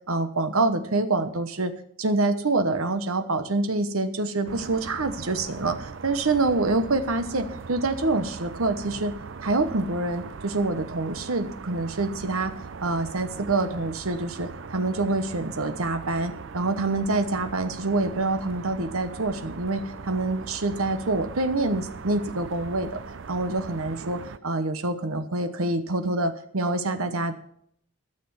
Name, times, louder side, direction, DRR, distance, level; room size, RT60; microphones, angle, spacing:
voice 1, 0.1-1.7 2.0-9.1 9.4-12.5 12.8-23.0 23.3-27.4, right 2 dB, 80° right, 9 dB, 1.1 m, -26 dB
sound 1, 4.5-24.4, right 5 dB, 60° right, 0.5 m, -40 dB
12.5 x 6.9 x 6.9 m, 0.67 s
head